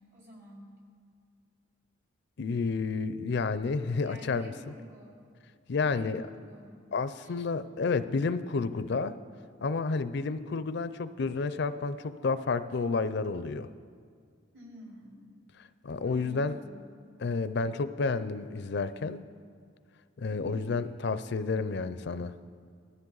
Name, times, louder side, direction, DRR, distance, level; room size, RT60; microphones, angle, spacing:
voice 1, 0.1-0.7 4.0-5.2 5.8-6.8 7.2-7.4 14.5-15.2 16.0-16.8 20.3-20.7, equal, 60° right, -4 dB, 4.3 m, -50 dB
voice 2, 2.4-4.7 5.7-6.3 6.9-9.2 9.6-13.7 15.8-16.6 17.2-19.2 20.2-22.3, left 4 dB, 60° left, 13 dB, 0.5 m, -30 dB
19.0 x 13.5 x 3.9 m, 2.1 s
head